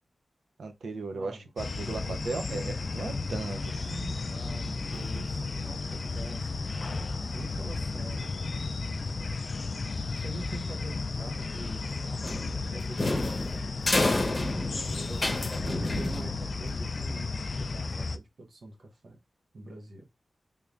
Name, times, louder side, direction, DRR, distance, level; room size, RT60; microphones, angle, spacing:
voice 1, 0.6-4.2, right 3 dB, 90° right, 0.6 m, -37 dB
voice 2, 1.1-1.5 1.8-2.1 4.3-8.7 10.1-14.0 14.6-19.2 19.5-20.1, right 2 dB, 75° right, 1.1 m, -46 dB
sound 1, 1.6-18.2, left 3 dB, 50° left, 0.3 m, -34 dB
Piano, 4.9-7.7, right 2 dB, 30° right, 0.6 m, -49 dB
sound 2, 12.2-16.7, left 2 dB, 30° left, 0.9 m, -29 dB
3.8 x 3.2 x 2.5 m
wide cardioid pair, 100°, 0 cm